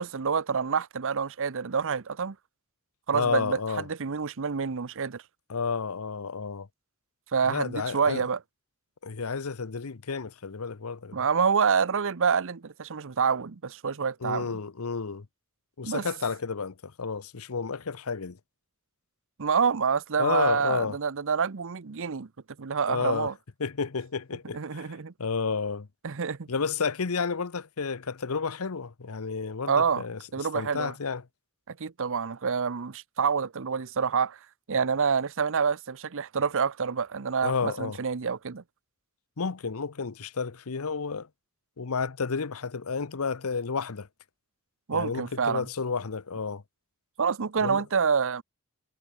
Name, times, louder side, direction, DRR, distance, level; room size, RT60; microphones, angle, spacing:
voice 1, 0.0-2.4 3.1-3.6 3.9-5.2 7.3-8.4 11.1-14.6 15.8-16.0 19.4-22.3 22.6-23.3 24.5-25.1 26.0-26.5 29.7-30.0 30.3-30.9 31.7-34.4 34.7-38.6 44.9-45.7 47.2-48.4, right 6 dB, 60° right, 0.8 m, -27 dB
voice 2, 3.1-3.9 5.5-6.7 7.4-8.3 9.0-11.2 14.2-15.3 15.8-18.4 20.2-21.0 22.9-23.3 23.6-25.9 26.5-30.2 30.5-31.2 37.4-38.0 39.4-41.3 41.8-44.1 44.9-46.6 47.6-47.8, left 5 dB, 70° left, 0.8 m, -31 dB
head